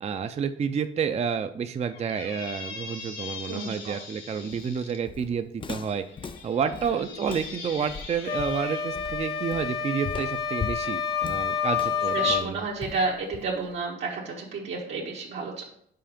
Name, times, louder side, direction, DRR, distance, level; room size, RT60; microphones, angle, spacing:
voice 1, 0.0-6.0 6.4-12.6, right 7 dB, 35° right, 9 dB, 0.4 m, -30 dB
Squeak, 1.9-5.0 5.8-8.9, left 5 dB, 85° left, 1.8 m, -42 dB
voice 2, 3.5-4.0 12.1-15.6, right 4 dB, 75° right, -4 dB, 1.3 m, -31 dB
Walk footsteps, 4.5-13.8, left 5 dB, 25° left, 0.4 m, -39 dB
sound 1, 8.3-12.5, left 7 dB, 50° left, 1.1 m, -28 dB
5.7 x 4.9 x 5.0 m, 0.66 s
cardioid pair, 90°, 20 cm